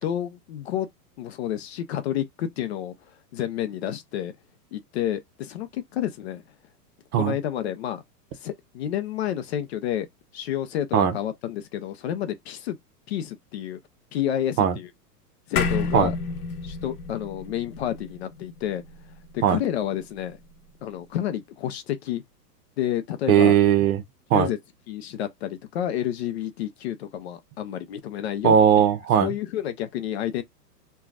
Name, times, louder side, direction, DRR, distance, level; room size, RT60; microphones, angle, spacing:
voice 1, 0.0-0.9 1.2-2.9 3.3-4.3 4.7-6.4 7.1-8.0 8.4-10.1 10.3-12.8 13.1-13.8 14.1-14.9 15.5-16.1 16.6-18.8 19.3-20.4 20.8-22.2 22.8-23.5 24.3-24.6 24.9-28.6 29.2-30.4, left 11 dB, 45° left, 0.5 m, -29 dB
sound 1, 15.6-20.2, left 4 dB, 65° left, 0.9 m, -31 dB
voice 2, 23.3-24.0 24.3-24.5 28.4-29.3, right 9 dB, 60° right, 0.9 m, -18 dB
3.3 x 2.2 x 2.3 m
hypercardioid pair, 140°, 48 cm